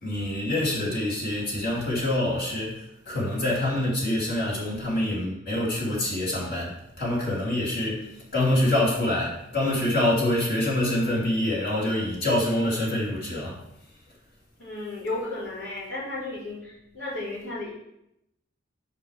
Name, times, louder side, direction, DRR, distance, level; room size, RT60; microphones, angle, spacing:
voice 1, 0.0-13.6, left 1 dB, 50° left, -5 dB, 2.7 m, -26 dB
voice 2, 14.6-17.7, left 2 dB, 85° left, -14 dB, 3.7 m, -34 dB
6.8 x 5.1 x 6.4 m, 0.82 s
head